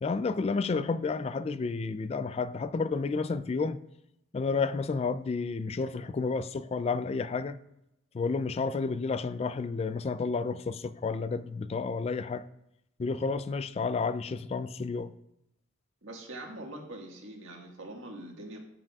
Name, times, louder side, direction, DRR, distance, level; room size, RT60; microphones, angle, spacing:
voice 1, 0.0-3.8 4.3-7.6 8.1-12.4 13.0-15.1, left 4 dB, 30° left, 0.3 m, -31 dB
voice 2, 16.0-18.6, right 1 dB, 85° right, 1.6 m, -43 dB
13.5 x 5.9 x 2.3 m
head